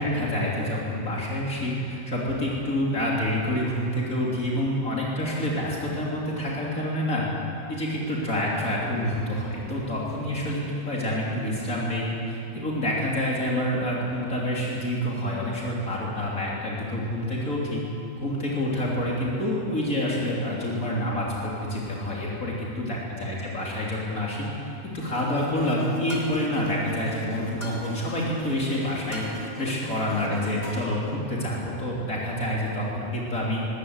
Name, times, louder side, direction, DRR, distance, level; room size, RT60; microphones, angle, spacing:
voice 1, 0.0-7.3 7.7-17.8 18.2-24.5 24.9-29.2 29.6-33.6, left 1 dB, 65° left, -4 dB, 3.7 m, -27 dB
sound 1, 25.0-31.0, right 1 dB, 40° left, 3.6 m, -37 dB
22.0 x 17.5 x 8.0 m, 2.8 s
omnidirectional pair, 1.6 m